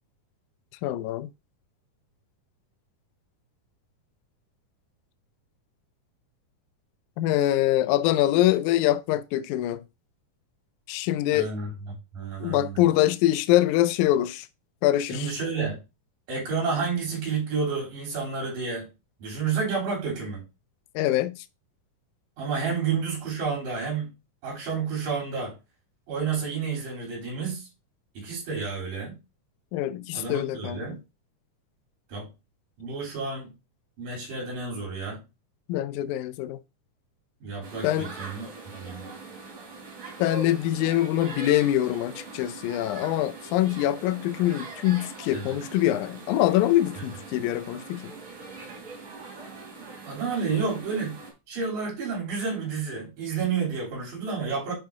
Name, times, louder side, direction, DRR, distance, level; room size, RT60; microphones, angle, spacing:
voice 1, 0.8-1.3 7.2-9.8 10.9-11.5 12.4-14.5 14.8-15.3 21.0-21.4 29.7-31.0 35.7-36.6 37.8-38.1 40.2-48.1, left 13 dB, 80° left, 1.9 m, -24 dB
voice 2, 11.3-11.7 12.1-12.8 15.1-15.8 16.3-18.9 19.2-20.4 22.4-24.1 24.4-25.5 26.1-27.7 28.1-29.2 30.1-31.0 32.1-32.3 32.8-33.5 34.0-35.2 37.4-39.1 45.3-45.6 50.1-51.2 51.5-54.7, right 5 dB, 85° right, 5.1 m, -30 dB
sound 1, 37.6-51.3, right 3 dB, 50° right, 4.0 m, -42 dB
10.5 x 3.9 x 3.6 m
omnidirectional pair, 3.7 m